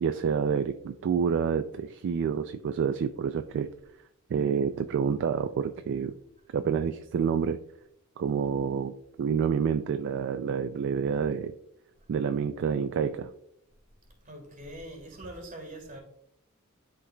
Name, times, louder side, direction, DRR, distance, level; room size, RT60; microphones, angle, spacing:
voice 1, 0.0-3.7 4.3-6.2 6.5-7.6 8.2-11.5 12.1-13.3, right 6 dB, 55° right, 9 dB, 0.3 m, -28 dB
voice 2, 14.2-16.0, right 1 dB, 35° right, 2 dB, 1.8 m, -43 dB
11.0 x 3.9 x 2.2 m, 0.76 s
head